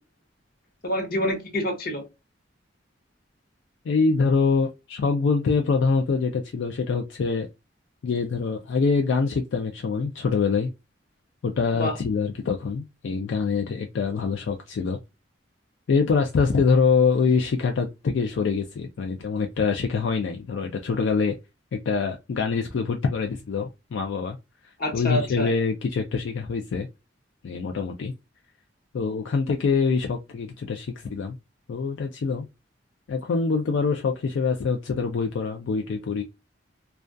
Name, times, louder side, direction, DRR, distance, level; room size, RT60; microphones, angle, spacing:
voice 1, 0.8-2.0 11.8-12.0 24.8-25.5, left 1 dB, 50° left, 0.7 m, -27 dB
voice 2, 3.8-7.5 8.0-10.7 11.4-15.0 15.9-21.4 21.7-24.4 24.6-26.9 27.4-28.1 28.9-31.4 31.7-32.5 33.1-36.2, left 5 dB, 75° left, 0.4 m, -24 dB
2.3 x 2.2 x 2.4 m
head